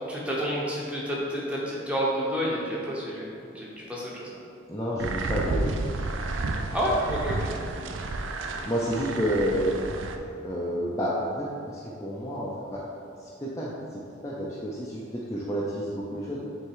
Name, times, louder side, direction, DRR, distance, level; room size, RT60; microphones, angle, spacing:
voice 1, 0.1-3.3 3.5-4.3 6.7-7.6, equal, 5° right, -5 dB, 1.0 m, -29 dB
voice 2, 4.7-5.8 8.7-9.8 10.1-12.8 13.2-16.4, equal, 15° left, -6 dB, 0.6 m, -30 dB
sound 1, 5.0-10.2, right 3 dB, 80° right, 0.5 m, -31 dB
6.3 x 3.7 x 4.7 m, 2.5 s
head